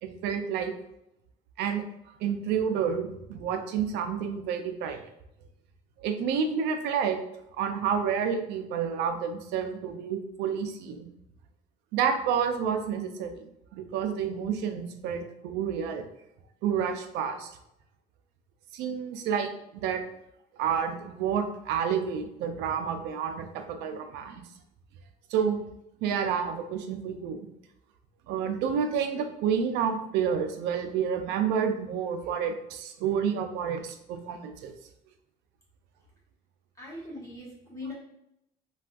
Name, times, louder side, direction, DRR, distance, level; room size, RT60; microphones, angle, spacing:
voice 1, 0.0-0.7 1.6-1.8 2.2-5.0 6.0-7.2 7.6-11.1 11.9-16.0 16.6-17.5 18.7-20.0 20.6-24.4 25.3-25.7 26.0-27.5 28.3-34.7, right 7 dB, 90° right, 6 dB, 0.4 m, -29 dB
voice 2, 36.8-37.9, left 2 dB, 20° left, -6 dB, 1.3 m, -40 dB
3.4 x 2.4 x 2.5 m, 0.82 s
cardioid pair, 110°, 17 cm